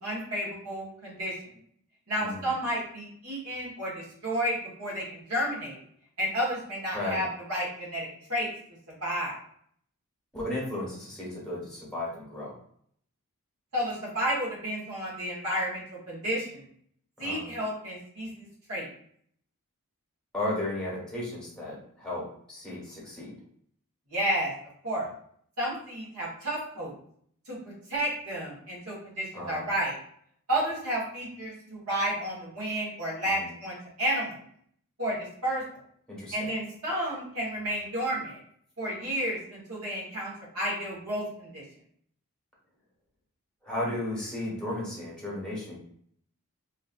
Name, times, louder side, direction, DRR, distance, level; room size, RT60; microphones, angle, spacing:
voice 1, 0.0-1.3 2.1-5.8 6.2-8.5 9.0-9.4 13.7-16.6 17.2-18.9 24.1-24.5 24.8-25.1 25.6-26.9 27.5-27.6 27.9-29.9 30.5-34.4 35.0-35.6 36.3-38.4 38.8-41.6, equal, 85° right, -4 dB, 1.3 m, -31 dB
voice 2, 6.9-7.2 10.3-12.6 17.2-17.5 20.3-22.2 22.5-23.3 29.3-29.7 33.2-33.5 36.1-36.5 43.6-45.8, left 1 dB, 5° left, -5 dB, 1.1 m, -34 dB
3.0 x 2.5 x 2.5 m, 0.64 s
head